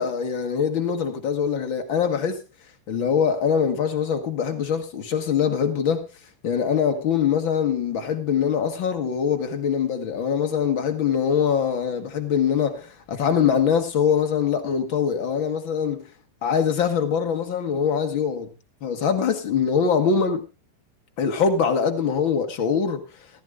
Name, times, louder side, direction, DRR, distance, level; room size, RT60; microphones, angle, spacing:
voice 1, 0.0-2.4 2.9-6.0 6.4-16.1 16.4-18.5 18.8-20.4 21.2-23.0, left 7 dB, 55° left, 1.3 m, -23 dB
16.0 x 15.0 x 2.4 m
omnidirectional pair, 4.6 m